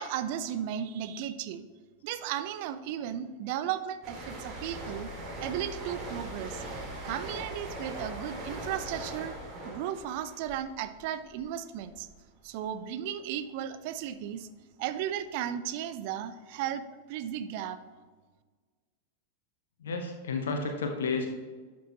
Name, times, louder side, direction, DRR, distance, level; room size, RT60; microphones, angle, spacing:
voice 1, 0.0-1.6 2.0-5.1 5.4-6.6 7.0-9.3 9.7-12.1 12.4-14.5 14.8-17.8, right 10 dB, 45° right, 12 dB, 0.5 m, -35 dB
sound 1, 4.0-11.5 11.8-12.1, right 1 dB, 30° right, 2.4 m, -40 dB
voice 2, 19.8-21.3, left 4 dB, 65° left, 4 dB, 0.9 m, -31 dB
11.5 x 6.1 x 3.0 m, 1.4 s
figure-of-eight pair, 90°, 0 cm